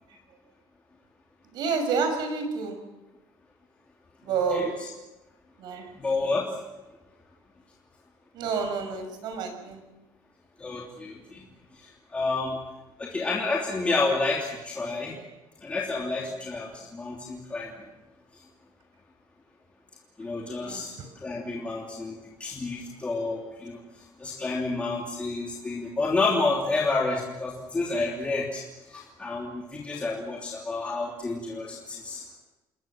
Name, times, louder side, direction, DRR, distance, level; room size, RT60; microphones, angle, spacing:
voice 1, 1.5-2.8 4.2-4.6 5.6-5.9 8.3-9.8 20.6-20.8, right 5 dB, 60° right, 7 dB, 6.4 m, -29 dB
voice 2, 4.5-4.9 5.9-6.5 10.6-11.4 11.7-12.6 13.0-15.2 15.6-17.7 18.3-18.4 20.2-32.2, left 3 dB, 15° left, -2 dB, 3.0 m, -30 dB
29.0 x 21.0 x 7.5 m, 1.1 s
cardioid pair, 165°, 8 cm